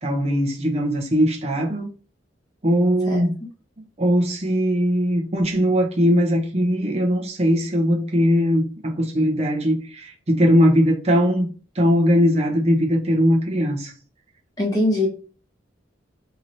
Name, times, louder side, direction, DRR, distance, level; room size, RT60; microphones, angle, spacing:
voice 1, 0.0-1.9 2.6-3.4 4.0-11.5 11.7-13.9, equal, 35° right, 0.7 m, -20 dB
voice 2, 14.6-15.1, left 2 dB, 20° left, 1.0 m, -21 dB
3.0 x 2.8 x 2.6 m
head